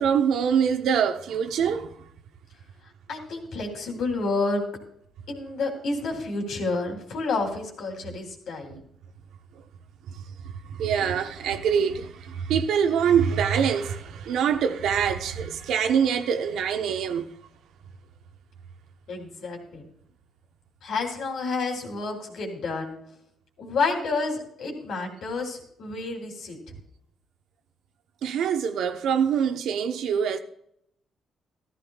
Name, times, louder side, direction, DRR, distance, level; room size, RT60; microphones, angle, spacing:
voice 1, 0.0-2.1 10.1-10.2 10.6-17.3 28.2-30.4, right 7 dB, 80° right, 1.0 m, -24 dB
voice 2, 3.1-4.6 5.3-8.8 19.1-19.9 20.8-23.0 23.6-26.6, left 3 dB, 70° left, 3.1 m, -29 dB
14.5 x 14.0 x 2.4 m
cardioid pair, 90°, 0 cm